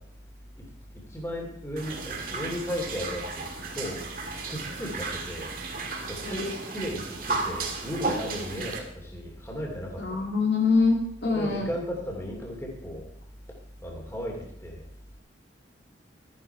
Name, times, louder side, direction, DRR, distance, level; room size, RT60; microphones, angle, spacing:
voice 1, 0.9-3.5 3.7-4.0 4.5-5.5 6.1-10.2 11.3-13.1 13.8-14.8, equal, 15° left, -1 dB, 2.8 m, -35 dB
sound 1, 1.8-8.8, right 3 dB, 50° right, 1.8 m, -34 dB
voice 2, 10.0-11.7, left 4 dB, 60° left, -1 dB, 2.5 m, -24 dB
13.5 x 10.5 x 4.6 m, 0.68 s
head